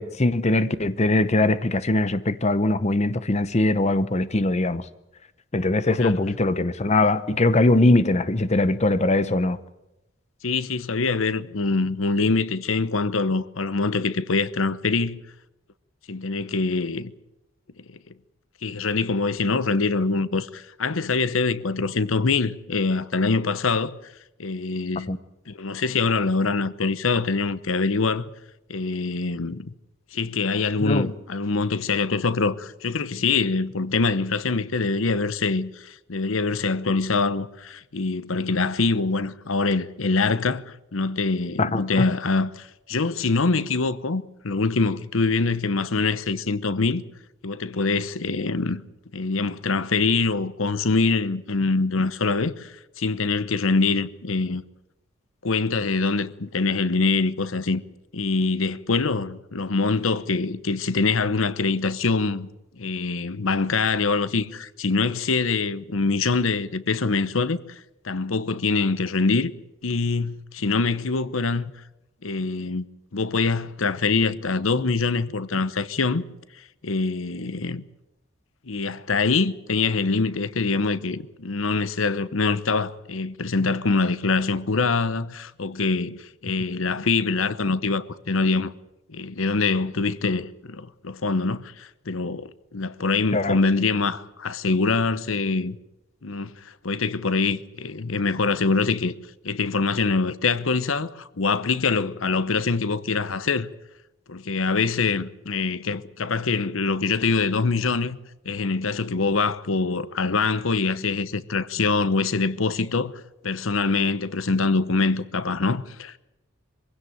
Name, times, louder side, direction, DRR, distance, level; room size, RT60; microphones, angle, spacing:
voice 1, 0.0-4.8 5.5-9.6 25.1-25.2 30.9-31.1 41.6-42.0 93.3-93.6, left 2 dB, 35° left, 0.8 m, -21 dB
voice 2, 10.4-15.2 16.1-17.1 18.6-24.0 24.4-25.1 25.5-28.3 28.7-29.7 30.1-47.0 47.4-48.8 49.1-54.6 55.4-57.8 58.1-62.5 62.8-69.5 69.8-71.7 72.2-72.9 73.1-76.2 76.8-77.8 78.7-88.7 89.1-95.8 96.2-99.1 99.4-103.7 104.3-108.2 108.4-113.1 113.4-116.2, left 4 dB, 90° left, 0.9 m, -24 dB
23.0 x 16.5 x 9.3 m
head